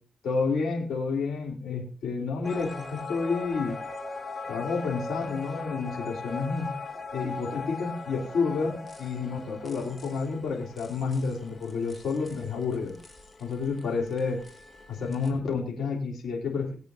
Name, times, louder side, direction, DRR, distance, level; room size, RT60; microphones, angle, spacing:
voice 1, 0.2-3.8 4.5-6.7 7.1-12.9 13.4-14.4 14.9-16.7, left 4 dB, 85° left, 0 dB, 3.3 m, -30 dB
sound 1, 2.4-15.3, left 3 dB, 35° left, 2.4 m, -40 dB
20.5 x 8.4 x 2.5 m, 0.37 s
cardioid pair, 75°, 0 cm